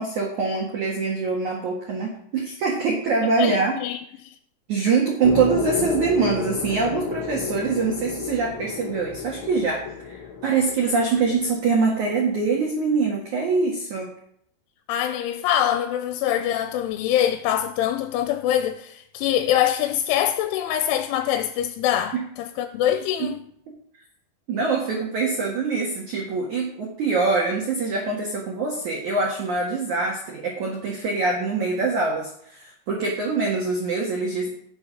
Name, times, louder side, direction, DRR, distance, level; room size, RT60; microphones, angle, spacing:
voice 1, 0.0-3.8 4.7-14.1 22.1-22.2 23.2-23.3 24.5-34.5, right 4 dB, 55° right, 2.2 m, -24 dB
voice 2, 3.4-4.4 14.9-23.4, left 11 dB, 85° left, 3.0 m, -24 dB
sound 1, 5.2-11.5, left 6 dB, 70° left, 1.7 m, -32 dB
17.0 x 7.1 x 5.2 m
omnidirectional pair, 5.7 m